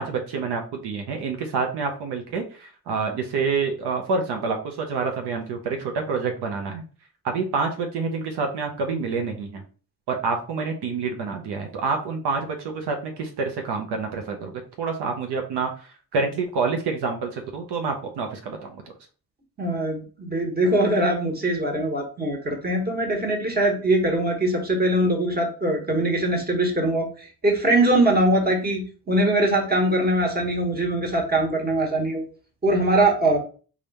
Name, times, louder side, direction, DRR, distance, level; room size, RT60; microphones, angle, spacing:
voice 1, 0.0-6.8 7.2-9.6 10.1-18.8, right 4 dB, 75° right, 3 dB, 0.8 m, -27 dB
voice 2, 19.6-32.2 32.6-33.4, right 1 dB, 25° right, 1 dB, 1.4 m, -22 dB
3.4 x 2.5 x 4.1 m, 0.39 s
supercardioid pair, 65°, 40 cm